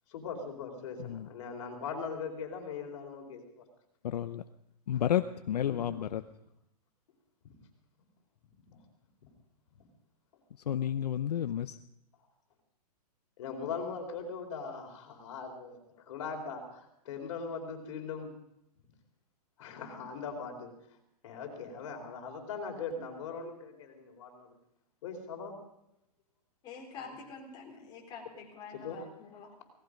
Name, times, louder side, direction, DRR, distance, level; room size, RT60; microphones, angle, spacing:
voice 1, 0.1-3.4 5.6-6.0 13.4-15.8 16.1-18.3 19.6-20.7 21.2-24.5 25.0-25.5 27.0-27.2 27.7-27.8 28.7-29.0, left 5 dB, 45° left, 3 dB, 4.4 m, -40 dB
voice 2, 4.0-4.4 4.9-6.2 10.7-11.8, left 10 dB, 70° left, 10 dB, 0.8 m, -31 dB
voice 3, 26.6-29.5, left 5 dB, 20° left, -1 dB, 3.8 m, -47 dB
18.0 x 15.0 x 5.3 m, 0.80 s
hypercardioid pair, 160°, 21 cm